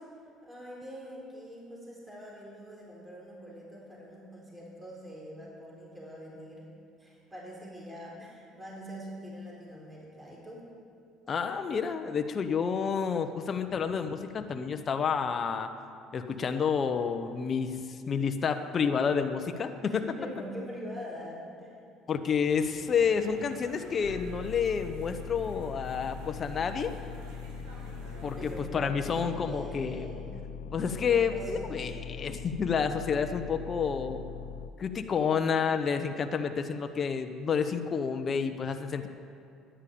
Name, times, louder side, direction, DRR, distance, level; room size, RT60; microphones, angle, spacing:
voice 1, 0.4-6.7 7.0-10.7 19.8-21.7 28.4-30.4 30.8-31.7, equal, 15° right, -4 dB, 4.0 m, -44 dB
voice 2, 11.3-15.7 16.1-20.0 22.1-26.9 28.2-30.0 30.7-34.2 34.8-39.1, left 6 dB, 40° left, 7 dB, 0.9 m, -29 dB
sound 1, 22.4-28.6, right 2 dB, 85° right, 4.3 m, -51 dB
sound 2, 24.0-34.7, left 6 dB, 80° left, 0.5 m, -41 dB
10.5 x 10.0 x 8.7 m, 2.5 s
supercardioid pair, 85°, 0 cm